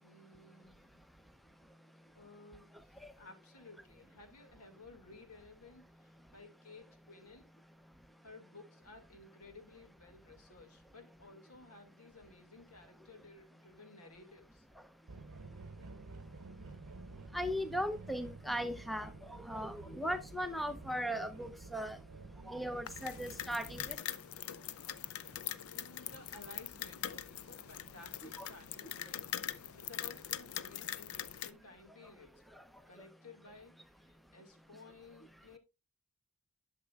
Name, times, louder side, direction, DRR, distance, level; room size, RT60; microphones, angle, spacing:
voice 1, 0.0-1.0 2.2-7.5 8.2-14.7 16.7-16.8 25.2-25.3 25.6-33.7 34.0-35.6, left 3 dB, 90° left, 2.1 m, -56 dB
sound 1, 15.1-24.0, right 3 dB, 90° right, 0.7 m, -51 dB
voice 2, 17.3-22.0 22.5-24.0 28.4-28.5, equal, ahead, 0.5 m, -38 dB
sound 2, 22.9-31.5, left 11 dB, 70° left, 0.5 m, -43 dB
11.5 x 6.6 x 2.3 m
head